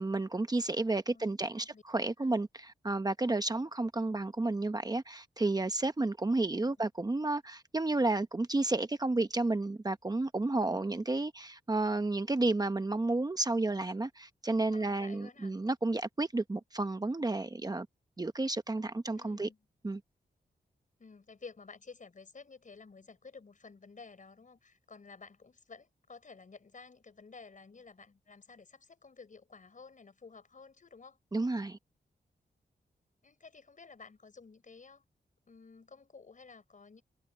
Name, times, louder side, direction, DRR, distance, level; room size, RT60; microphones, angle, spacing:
voice 1, 0.0-17.9 18.2-19.5 19.8-20.0 31.3-31.8, right 2 dB, 20° right, 0.9 m, -31 dB
voice 2, 1.1-1.8 2.2-2.4 6.4-6.7 14.7-15.6 19.2-19.6 21.0-31.2 33.2-35.0 35.5-37.0, left 4 dB, 50° left, 5.1 m, -53 dB
wide cardioid pair, 90°, 17 cm